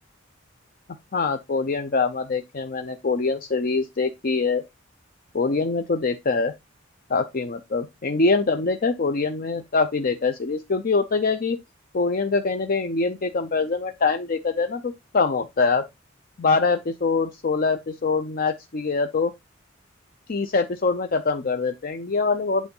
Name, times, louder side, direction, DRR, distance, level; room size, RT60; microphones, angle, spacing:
voice 1, 1.1-4.6 5.3-6.5 7.1-11.6 11.9-15.9 16.4-19.3 20.3-22.7, left 4 dB, 45° left, 0.6 m, -24 dB
8.4 x 3.7 x 5.4 m
head